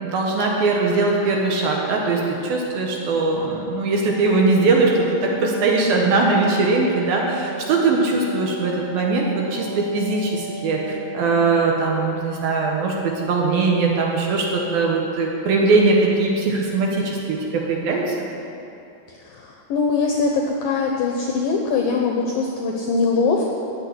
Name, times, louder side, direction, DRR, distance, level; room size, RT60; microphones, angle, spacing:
voice 1, 0.1-18.1, right 3 dB, 65° right, -1 dB, 2.8 m, -20 dB
Wind instrument woodwind instrument, 3.9-11.9, right 2 dB, 45° right, 5.4 m, -36 dB
voice 2, 19.1-23.5, left 4 dB, 75° left, 1 dB, 2.1 m, -22 dB
14.0 x 6.7 x 10.0 m, 2.7 s
omnidirectional pair, 5.2 m